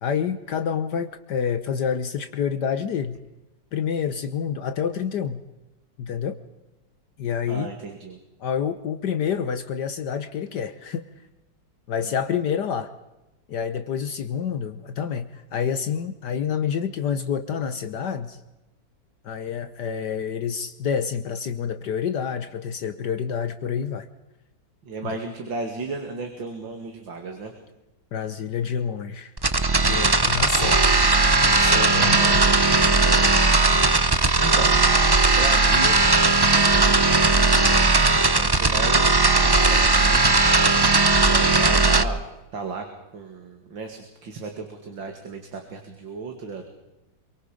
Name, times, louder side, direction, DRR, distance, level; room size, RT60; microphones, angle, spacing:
voice 1, 0.0-3.2 3.7-5.4 6.0-6.4 7.2-7.7 8.4-11.0 11.9-12.9 13.5-18.4 19.2-24.1 25.0-25.1 28.1-29.3 29.8-31.0 31.6-32.4 33.0-33.2, left 7 dB, 65° left, 10 dB, 1.6 m, -28 dB
voice 2, 7.5-8.2 12.0-12.1 24.8-27.5 31.9-32.6 34.4-34.8 35.3-36.0 36.5-40.2 41.2-42.3 42.5-42.9 43.1-46.6, right 4 dB, 90° right, 4 dB, 3.1 m, -34 dB
sound 1, 29.4-42.0, right 3 dB, 35° right, 0.3 m, -18 dB
26.5 x 23.5 x 5.2 m, 0.98 s
omnidirectional pair, 2.0 m